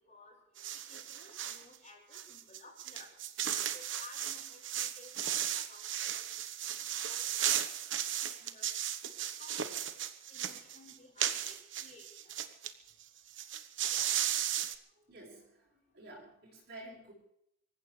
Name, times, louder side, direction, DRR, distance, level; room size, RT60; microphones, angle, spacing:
sound 1, 0.6-1.6 2.1-12.7 13.0-13.1 13.3-14.8, right 10 dB, 80° right, 1.1 m, -35 dB
voice 1, 0.7-3.1 3.7-6.3 6.7-7.6 8.1-8.7 9.4-9.8 10.3-12.3 13.9-14.0, left 3 dB, 40° left, -1 dB, 5.7 m, -56 dB
voice 2, 15.1-17.1, right 1 dB, 60° right, -8 dB, 6.2 m, -51 dB
26.0 x 15.0 x 3.3 m, 0.77 s
head